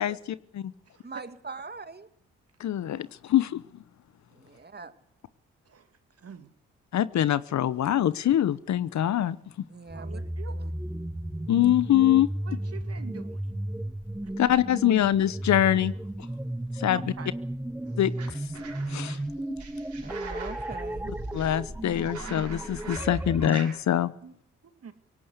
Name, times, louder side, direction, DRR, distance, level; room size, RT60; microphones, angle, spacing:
voice 1, 0.0-0.7 2.6-3.6 6.9-9.4 11.5-12.3 14.4-15.9 16.8-17.0 18.0-18.1 18.9-19.2 21.3-24.1, left 11 dB, 65° left, 17 dB, 1.0 m, -24 dB
voice 2, 1.0-2.1 4.3-4.9 9.7-10.2 10.5-10.7 20.0-21.1, right 4 dB, 30° right, 11 dB, 2.1 m, -42 dB
voice 3, 4.5-4.9 5.7-5.9 6.2-6.5 9.9-10.6 12.5-13.5 16.9-17.3 24.2-24.3 24.8-24.9, right 6 dB, 50° right, 9 dB, 2.4 m, -46 dB
sound 1, 9.9-23.6, right 1 dB, 5° right, 0.8 m, -34 dB
sound 2, 17.9-19.2 19.6-23.8, right 5 dB, 70° right, 6.0 m, -44 dB
18.5 x 17.0 x 8.2 m, 0.64 s
hypercardioid pair, 45°, 31 cm